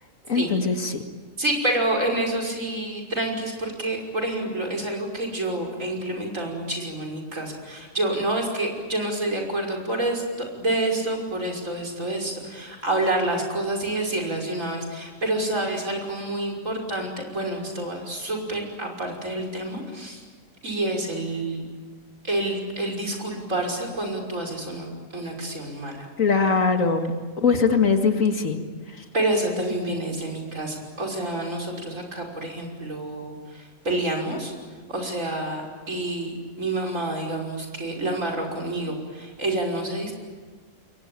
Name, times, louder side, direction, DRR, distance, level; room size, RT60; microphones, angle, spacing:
voice 1, 0.3-1.0 26.2-27.1 27.4-28.6, left 5 dB, 70° left, 5 dB, 2.4 m, -21 dB
voice 2, 1.4-10.2 10.6-20.2 20.6-21.6 22.2-26.1 29.1-34.5 34.9-40.1, right 1 dB, 70° right, 1 dB, 6.2 m, -28 dB
28.5 x 23.0 x 9.0 m, 1.5 s
omnidirectional pair, 1.4 m